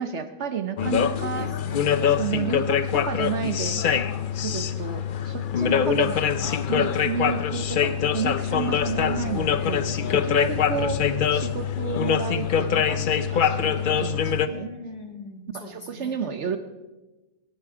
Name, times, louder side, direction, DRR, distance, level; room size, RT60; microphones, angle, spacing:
voice 1, 0.0-1.5 2.1-4.0 4.4-6.2 6.7-14.7 15.5-16.6, right 7 dB, 60° right, 9 dB, 1.1 m, -32 dB
sound 1, 0.8-14.5, left 8 dB, 55° left, 0.6 m, -24 dB
voice 2, 1.3-2.1 5.6-6.3 10.2-10.8 13.7-16.3, left 3 dB, 30° left, 4 dB, 1.8 m, -41 dB
22.0 x 9.9 x 4.9 m, 1.1 s
omnidirectional pair, 1.4 m